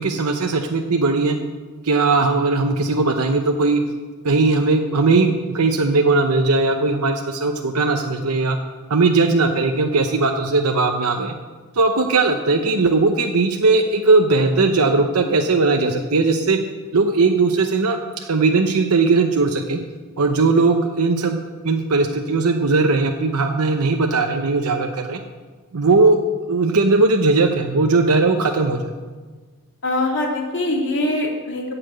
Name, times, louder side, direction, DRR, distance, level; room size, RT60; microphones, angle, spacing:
voice 1, 0.0-1.4 1.8-3.8 4.2-8.6 8.9-11.3 11.7-16.6 16.9-19.8 20.2-21.4 21.6-25.2 25.7-26.2 26.5-28.9, right 3 dB, 90° right, 4 dB, 0.8 m, -18 dB
voice 2, 29.8-31.7, left 1 dB, 55° left, 0 dB, 2.5 m, -23 dB
15.5 x 5.9 x 8.0 m, 1.4 s
head